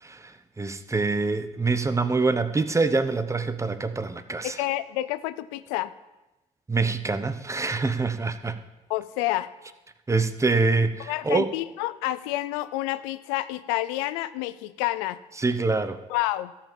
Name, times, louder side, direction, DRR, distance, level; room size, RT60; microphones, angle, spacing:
voice 1, 0.0-4.6 6.7-8.6 10.1-11.5 15.4-16.0, right 3 dB, 20° right, 11 dB, 0.9 m, -25 dB
voice 2, 4.4-5.9 8.9-9.5 11.1-15.2 16.1-16.5, left 16 dB, 90° left, 15 dB, 0.5 m, -29 dB
13.0 x 5.7 x 7.1 m, 1.0 s
supercardioid pair, 70°, 16 cm